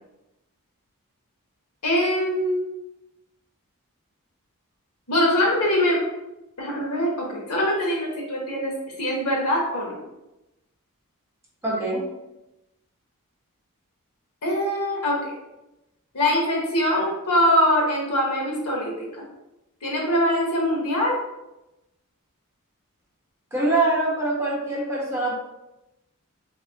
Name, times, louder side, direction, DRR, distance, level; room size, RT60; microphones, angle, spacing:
voice 1, 1.8-2.6 5.1-6.0 6.6-8.7 9.0-9.9 14.4-15.3 16.1-19.1 19.8-21.2, equal, 90° left, -2 dB, 1.3 m, -23 dB
voice 2, 11.6-12.0 23.5-25.4, right 2 dB, 10° right, -6 dB, 1.3 m, -24 dB
3.6 x 3.4 x 3.5 m, 0.95 s
head